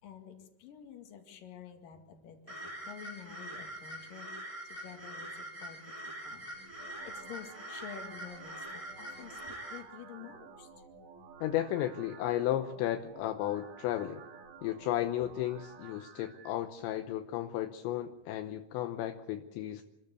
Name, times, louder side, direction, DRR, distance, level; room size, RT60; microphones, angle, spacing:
voice 1, 0.0-6.0 6.2-10.7, left 8 dB, 50° left, 4 dB, 3.3 m, -50 dB
sound 1, 2.5-9.8, right 1 dB, 10° right, 2.7 m, -44 dB
sound 2, 6.5-16.5, right 5 dB, 70° right, 4.8 m, -53 dB
voice 2, 11.4-14.2 14.6-19.8, left 12 dB, 75° left, 7 dB, 2.8 m, -34 dB
28.0 x 14.0 x 8.3 m, 0.98 s
omnidirectional pair, 5.9 m